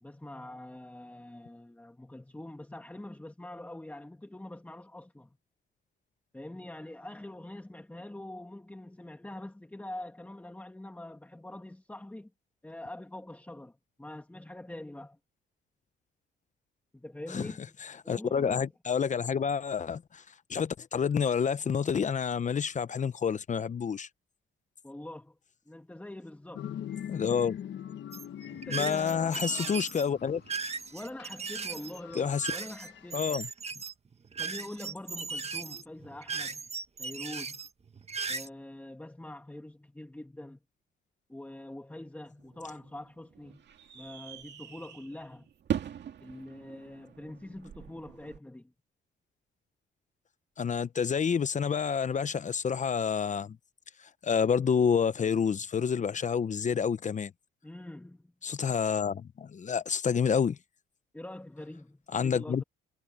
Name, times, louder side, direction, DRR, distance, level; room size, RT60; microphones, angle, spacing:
voice 1, 0.0-5.3 6.3-12.3 12.6-15.2 16.9-17.7 18.0-18.7 24.8-25.4 25.6-26.7 28.5-29.9 30.9-33.3 34.4-36.6 37.0-37.6 38.3-40.6 41.3-43.6 43.9-45.5 46.2-48.7 57.6-58.3 61.1-62.6, left 1 dB, 10° left, 1.7 m, -44 dB
voice 2, 17.8-20.2 20.5-24.1 27.1-27.6 28.7-30.4 32.2-32.5 33.1-33.5 50.6-53.6 54.2-57.3 58.4-60.6 62.1-62.6, left 6 dB, 40° left, 0.8 m, -28 dB
sound 1, 26.6-33.5, left 10 dB, 65° left, 1.4 m, -43 dB
sound 2, 28.1-38.5, right 5 dB, 30° right, 1.6 m, -37 dB
sound 3, 42.4-48.4, right 9 dB, 60° right, 2.3 m, -41 dB
cardioid pair, 90°, 20 cm